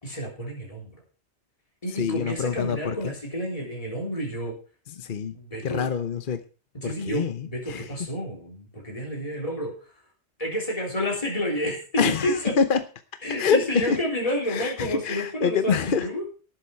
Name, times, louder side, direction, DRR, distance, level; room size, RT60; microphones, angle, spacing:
voice 1, 0.0-0.9 1.8-4.6 5.3-5.9 6.7-9.7 10.4-12.6 13.2-16.3, equal, 30° left, -2 dB, 3.9 m, -30 dB
voice 2, 2.0-3.1 5.0-5.3 5.6-6.4 6.8-7.8 12.0-12.8 13.3-14.0 14.5-16.1, left 6 dB, 50° left, 9 dB, 1.0 m, -25 dB
18.0 x 7.9 x 4.6 m, 0.37 s
omnidirectional pair, 1.2 m